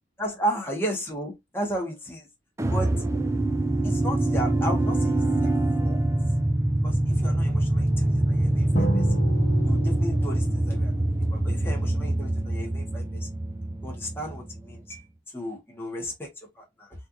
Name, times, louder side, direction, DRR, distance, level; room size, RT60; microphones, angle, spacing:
voice 1, 0.2-2.3 2.7-2.9 3.8-5.5 5.8-6.0 6.8-9.0 9.6-13.3 13.8-15.1 15.3-16.3 16.6-16.9, equal, 10° left, 1.5 m, -34 dB
sound 1, 2.6-14.8, right 1 dB, 15° right, 0.3 m, -24 dB
Drum, 8.7-10.5, right 1 dB, 35° left, 1.7 m, -31 dB
4.3 x 3.3 x 2.6 m
head